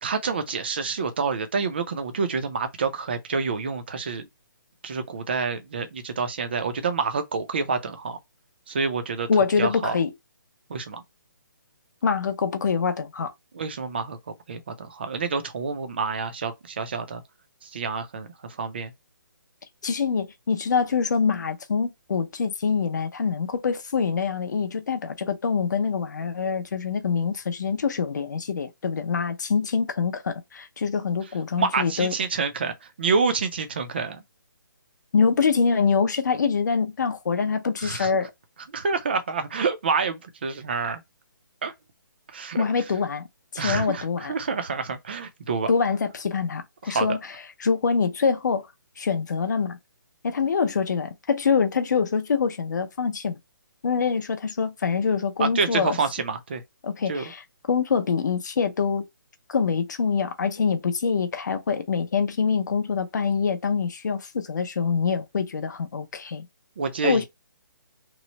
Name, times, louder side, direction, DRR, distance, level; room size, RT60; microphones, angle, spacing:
voice 1, 0.0-4.3 4.8-8.2 8.7-10.0 10.7-11.0 13.5-17.2 17.6-18.9 31.6-34.2 37.8-38.1 38.7-41.0 41.6-41.7 42.3-42.7 43.6-45.7 46.9-47.1 55.4-56.6 57.1-57.2 66.8-67.2, right 4 dB, 30° right, 0.4 m, -28 dB
voice 2, 9.3-10.1 12.0-13.3 19.8-32.1 35.1-38.3 42.6-43.3 43.5-44.3 45.7-47.2 47.6-48.7 49.0-49.8 50.2-53.4 53.8-56.0 56.8-59.1 59.5-66.5 67.0-67.2, left 5 dB, 55° left, 0.6 m, -25 dB
3.0 x 2.0 x 4.0 m
hypercardioid pair, 175°, 11 cm